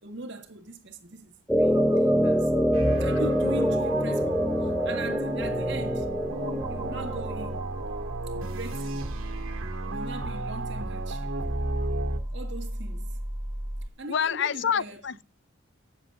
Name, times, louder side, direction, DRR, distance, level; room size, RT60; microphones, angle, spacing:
voice 1, 0.0-2.5 3.0-6.1 6.7-7.7 8.3-9.1 9.8-11.4 12.3-13.2 14.0-15.0, right 2 dB, 60° right, 1.8 m, -40 dB
sound 1, 1.5-7.6, equal, 5° left, 0.7 m, -25 dB
sound 2, 1.6-13.9, right 1 dB, 20° right, 1.1 m, -38 dB
sound 3, 2.7-12.2, right 2 dB, 85° right, 1.9 m, -34 dB
voice 2, 14.1-15.2, left 7 dB, 60° left, 0.4 m, -27 dB
18.5 x 7.4 x 2.5 m
head